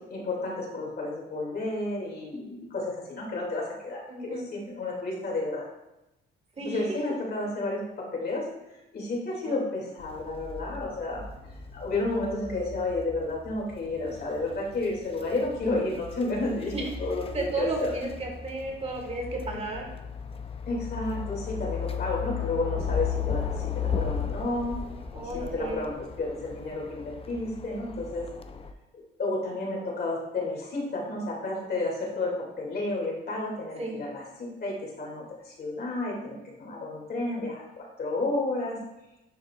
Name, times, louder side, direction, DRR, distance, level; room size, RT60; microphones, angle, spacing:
voice 1, 0.1-5.6 6.6-8.5 8.7-17.9 20.7-24.8 25.1-28.3 28.9-38.8, left 2 dB, 50° left, -2 dB, 2.5 m, -31 dB
voice 2, 4.1-4.5 6.6-6.8 9.5-9.6 16.7-16.8 17.3-19.9 25.1-25.9 33.8-34.0, right 2 dB, 30° right, 0 dB, 1.7 m, -33 dB
sound 1, 10.0-28.7, left 7 dB, 30° left, 0.6 m, -36 dB
10.5 x 4.7 x 2.4 m, 0.93 s
cardioid pair, 90°, 20 cm